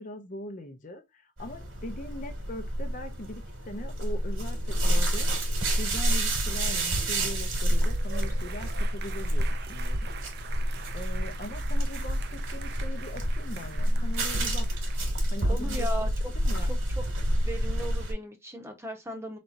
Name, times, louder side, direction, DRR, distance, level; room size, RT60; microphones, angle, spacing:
voice 1, 0.0-5.5 5.8-10.1 10.5-10.6 10.9-14.7 15.3-16.1 16.3-16.7, left 1 dB, 40° left, 0.8 m, -41 dB
sound 1, 1.4-18.1, equal, 90° right, 2.5 m, -28 dB
sound 2, 7.1-15.0, right 7 dB, 55° right, 0.5 m, -45 dB
voice 2, 15.5-16.1 16.6-17.0 17.4-19.4, right 1 dB, 15° right, 1.0 m, -37 dB
4.5 x 4.3 x 2.6 m
head